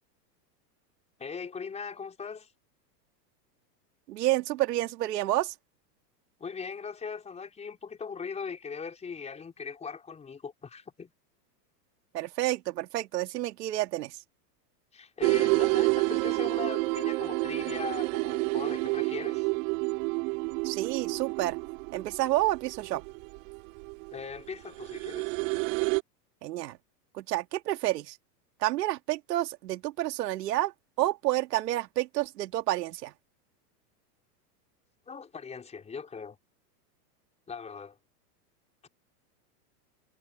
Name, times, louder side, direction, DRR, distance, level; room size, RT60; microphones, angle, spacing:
voice 1, 1.2-2.5 6.4-11.1 14.9-19.5 24.1-25.3 35.1-36.4 37.5-38.0 38.8-38.9, left 5 dB, 15° left, 4.5 m, -39 dB
voice 2, 4.1-5.5 12.1-14.2 20.6-21.6 21.9-23.0 26.4-26.8 27.1-28.2 28.6-30.7 31.0-33.1, right 15 dB, 75° right, 2.3 m, -29 dB
sound 1, 15.2-26.0, right 28 dB, 50° right, 2.5 m, -29 dB
supercardioid pair, 155°, 48 cm